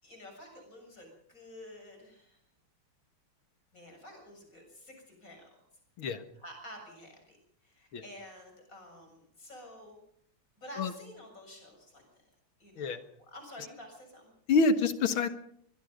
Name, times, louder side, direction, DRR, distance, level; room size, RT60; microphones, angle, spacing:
voice 1, 0.0-2.4 3.7-5.4 6.3-7.4 7.6-10.0 10.6-12.0 12.6-12.9 13.2-14.3, left 1 dB, 40° left, 3 dB, 7.6 m, -50 dB
voice 2, 14.5-15.3, left 4 dB, 85° left, 10 dB, 2.4 m, -26 dB
23.0 x 22.0 x 5.3 m, 0.67 s
omnidirectional pair, 2.2 m